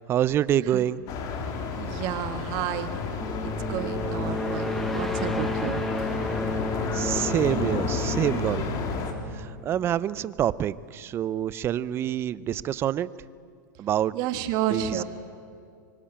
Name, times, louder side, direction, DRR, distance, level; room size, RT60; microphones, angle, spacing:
voice 1, 0.1-1.0 6.9-8.8 9.3-13.1 13.8-14.1 14.7-15.0, right 11 dB, 25° right, 19 dB, 0.6 m, -26 dB
sound 1, 1.1-9.1, left 4 dB, 35° left, 3.2 m, -31 dB
voice 2, 1.8-2.9 3.4-5.8 14.1-15.0, right 11 dB, 40° right, 9 dB, 1.7 m, -31 dB
sound 2, 3.2-9.9, left 1 dB, ahead, 0.9 m, -32 dB
25.0 x 24.0 x 8.9 m, 2.2 s
supercardioid pair, 150°, 11 cm